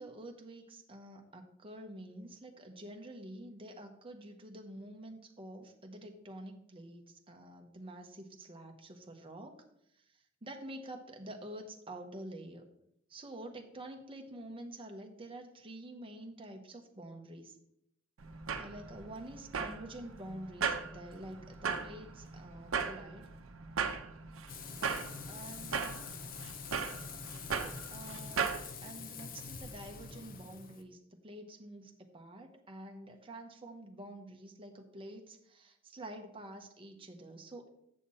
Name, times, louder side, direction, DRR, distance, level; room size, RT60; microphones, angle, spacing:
voice 1, 0.0-9.5 10.4-12.6 13.1-17.5 18.6-23.3 25.3-25.9 27.5-37.7, right 1 dB, 25° right, 4 dB, 0.9 m, -48 dB
sound 1, 18.2-28.6, right 6 dB, 75° right, 0.7 m, -38 dB
Frying (food), 24.5-30.8, left 5 dB, 45° left, 0.7 m, -46 dB
7.3 x 6.6 x 4.3 m, 0.77 s
head